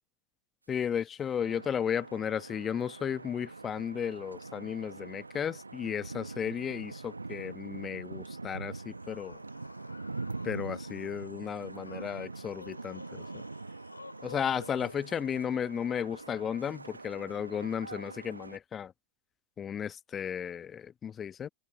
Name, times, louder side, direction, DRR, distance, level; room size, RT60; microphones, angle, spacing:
voice 1, 0.7-9.4 10.4-13.2 14.2-18.9 19.6-21.5, left 8 dB, 25° left, 1.1 m, -34 dB
sound 1, 1.4-18.6, right 3 dB, 80° right, 1.1 m, -43 dB
sound 2, 8.7-15.0, left 4 dB, 75° left, 5.2 m, -52 dB
open air
figure-of-eight pair, 90°, 0 cm